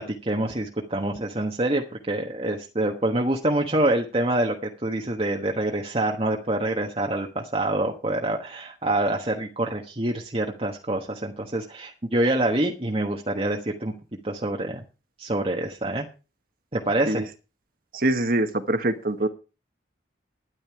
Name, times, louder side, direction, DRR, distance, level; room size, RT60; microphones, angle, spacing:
voice 1, 0.0-13.9 14.2-14.8 15.2-16.1 16.7-17.3, right 1 dB, 30° right, 1 dB, 1.3 m, -26 dB
voice 2, 17.9-19.3, right 1 dB, 50° right, 9 dB, 1.5 m, -24 dB
12.5 x 10.5 x 4.7 m, 0.32 s
head